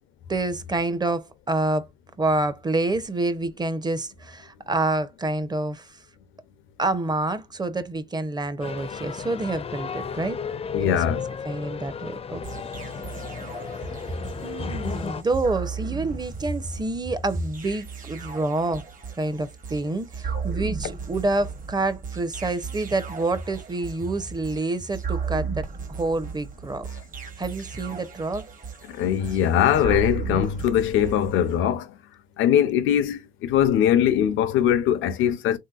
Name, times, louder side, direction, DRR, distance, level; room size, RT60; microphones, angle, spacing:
voice 1, 0.3-1.9 2.2-6.0 6.8-10.4 10.8-11.0 11.4-12.4 14.4-18.8 19.2-25.7 25.9-26.9 27.4-28.4, right 2 dB, 20° right, 0.6 m, -27 dB
sound 1, 8.6-15.2, left 6 dB, 30° left, 0.4 m, -34 dB
voice 2, 10.7-11.3 28.9-32.0 32.4-35.6, left 10 dB, 90° left, 0.6 m, -21 dB
sound 2, 12.4-31.6, right 6 dB, 45° right, 1.0 m, -36 dB
3.3 x 2.8 x 2.3 m
cardioid pair, 90°, 20 cm